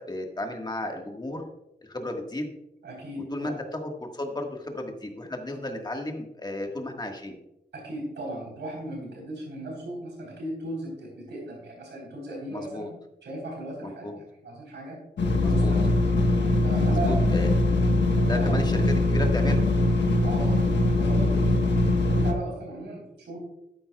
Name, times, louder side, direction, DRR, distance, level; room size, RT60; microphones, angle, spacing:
voice 1, 0.1-1.5 1.8-2.5 3.3-7.4 12.5-12.9 13.8-14.2 15.4-15.7 16.9-17.5 18.2-19.7, left 1 dB, 25° left, 3 dB, 1.5 m, -33 dB
voice 2, 2.8-3.6 7.7-12.9 13.2-15.0 15.4-15.9 16.6-17.2 18.3-18.6 20.2-23.4, right 1 dB, 80° right, -2 dB, 3.9 m, -37 dB
sound 1, 15.2-22.3, left 2 dB, 80° left, 1.2 m, -22 dB
12.0 x 9.4 x 2.3 m, 0.87 s
wide cardioid pair, 100°, 18 cm